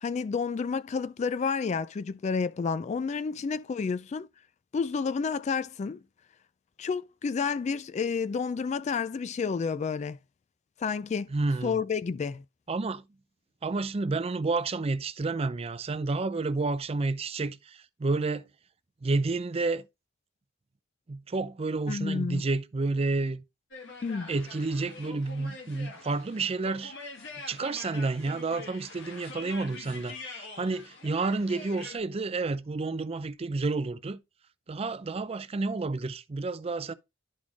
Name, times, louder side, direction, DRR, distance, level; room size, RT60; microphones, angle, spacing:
voice 1, 0.0-4.3 4.7-6.0 6.8-10.2 10.8-11.3 11.6-12.4 21.9-22.4 24.0-24.3, left 5 dB, 35° left, 0.3 m, -30 dB
voice 2, 11.3-11.8 12.7-13.0 13.6-18.4 19.0-19.8 21.1-23.4 24.3-26.9 27.5-34.2 34.7-36.9, right 3 dB, 30° right, 0.4 m, -30 dB
sound 1, 23.7-32.0, left 3 dB, 60° left, 1.6 m, -44 dB
11.0 x 4.2 x 3.0 m
head